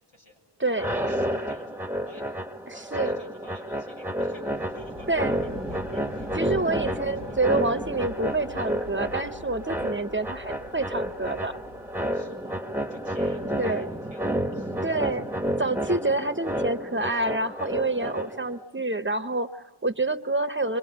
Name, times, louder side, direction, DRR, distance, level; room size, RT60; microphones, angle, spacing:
sound 1, 0.7-18.6, equal, 5° right, 1.1 m, -31 dB
voice 1, 1.1-2.3 2.6-5.1 5.4-6.5 6.8-7.4 12.1-15.3, left 1 dB, 90° left, 0 dB, 7.1 m, -52 dB
voice 2, 2.7-3.2 5.1-5.4 6.4-11.6 13.6-13.9 14.8-15.2 15.6-20.8, right 2 dB, 25° right, 9 dB, 0.9 m, -27 dB
sound 2, 4.6-12.4, left 1 dB, 65° left, 1.8 m, -45 dB
27.5 x 23.0 x 8.1 m, 1.3 s
wide cardioid pair, 65°, 46 cm